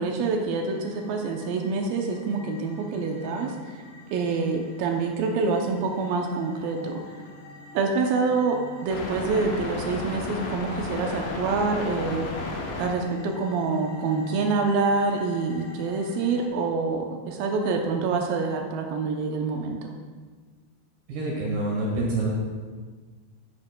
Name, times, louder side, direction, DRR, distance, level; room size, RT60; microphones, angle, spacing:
voice 1, 0.0-3.8 4.1-6.9 7.7-8.6 8.8-12.3 12.8-19.9, right 4 dB, 85° right, 2 dB, 2.0 m, -26 dB
sound 1, 0.7-16.5, left 2 dB, 75° left, 3.4 m, -38 dB
voice 2, 21.1-22.3, right 2 dB, 70° right, -4 dB, 3.3 m, -26 dB
11.5 x 9.5 x 2.2 m, 1.5 s
omnidirectional pair, 5.1 m